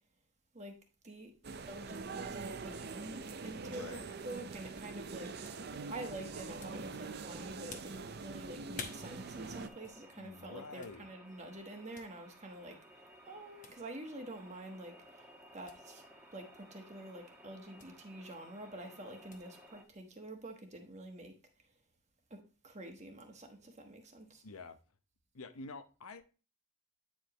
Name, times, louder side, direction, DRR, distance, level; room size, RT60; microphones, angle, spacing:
sound 1, 1.4-9.7, right 4 dB, 45° right, 0.5 m, -44 dB
voice 1, 1.7-4.0 4.2-12.8 13.3-15.3 15.5-16.0 16.3-21.3 22.3-24.4, right 1 dB, 30° right, 1.2 m, -47 dB
voice 2, 3.6-4.1 10.2-11.1 24.4-24.8 25.3-26.2, left 3 dB, 80° left, 0.8 m, -48 dB
sound 2, 4.6-20.2, left 5 dB, 35° left, 0.9 m, -56 dB
sound 3, 8.8-19.8, equal, 10° right, 1.1 m, -58 dB
9.2 x 4.9 x 2.9 m
head